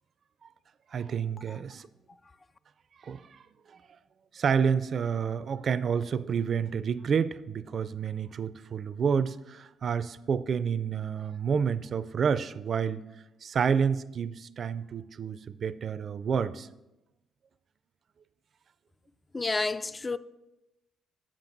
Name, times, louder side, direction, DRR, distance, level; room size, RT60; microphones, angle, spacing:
voice 1, 0.9-1.9 3.0-3.4 4.3-13.0 13.4-16.7, right 6 dB, 50° right, 0.4 m, -29 dB
voice 2, 19.3-20.2, left 3 dB, 25° left, 0.3 m, -29 dB
8.7 x 7.5 x 3.9 m
cardioid pair, 90°, 0 cm